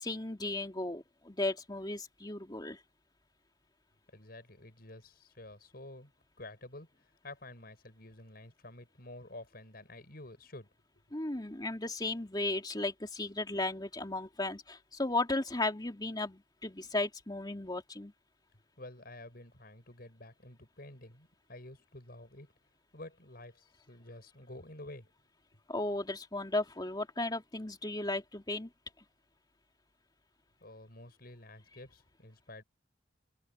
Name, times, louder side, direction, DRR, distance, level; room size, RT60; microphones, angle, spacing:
voice 1, 0.0-2.8 11.1-18.1 25.7-28.7, left 2 dB, 20° left, 2.7 m, -35 dB
voice 2, 4.1-6.1 6.4-10.7 18.8-22.5 22.9-25.1 30.6-32.6, left 2 dB, 50° left, 6.9 m, -50 dB
head